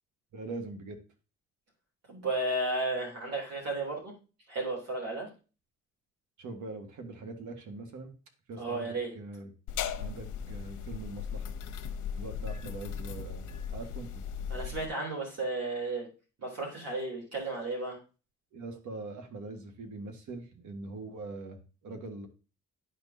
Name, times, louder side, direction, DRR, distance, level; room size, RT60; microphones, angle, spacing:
voice 1, 0.3-1.0 6.4-8.1 8.5-9.5 10.0-11.5 12.2-14.2 18.5-22.3, right 3 dB, 75° right, 5 dB, 1.8 m, -42 dB
voice 2, 2.1-4.1 4.5-5.3 8.6-9.1 14.5-16.1 16.4-18.0, right 2 dB, 55° right, -1 dB, 3.3 m, -33 dB
sound 1, 9.7-14.9, left 7 dB, 75° left, 0.9 m, -37 dB
11.5 x 4.5 x 2.8 m, 0.33 s
cardioid pair, 90°, 30 cm